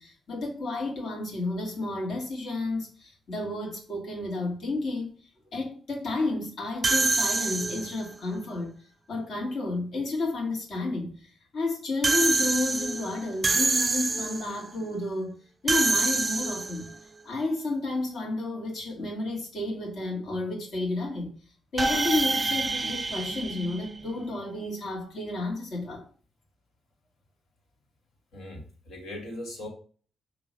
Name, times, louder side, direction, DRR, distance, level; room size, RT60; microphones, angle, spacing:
voice 1, 0.0-5.1 5.5-8.7 9.1-15.3 15.6-16.9 17.2-21.3 21.7-26.1, left 2 dB, 50° left, 2.1 m, -31 dB
sound 1, 6.8-8.1 12.0-14.6 15.7-16.9 21.8-24.3, right 3 dB, 20° right, 0.3 m, -27 dB
voice 2, 28.3-29.7, left 1 dB, 70° left, 2.3 m, -39 dB
6.1 x 3.0 x 5.2 m
wide cardioid pair, 170°, 0 cm